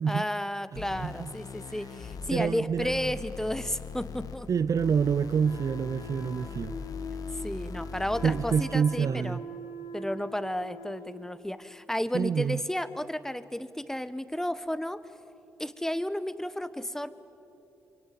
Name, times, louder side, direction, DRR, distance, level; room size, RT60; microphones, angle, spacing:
voice 1, 0.1-4.5 7.4-9.4 9.9-15.0 15.6-17.1, left 1 dB, 5° left, 1.3 m, -32 dB
voice 2, 0.7-1.3 2.3-3.1 4.5-6.8 8.2-9.4 12.1-12.6, right 6 dB, 50° right, 0.5 m, -27 dB
sound 1, 0.8-8.8, left 5 dB, 60° left, 1.5 m, -41 dB
Wind instrument woodwind instrument, 5.4-11.3, left 1 dB, 85° left, 3.7 m, -43 dB
24.5 x 24.0 x 8.6 m
hypercardioid pair, 45°, 7 cm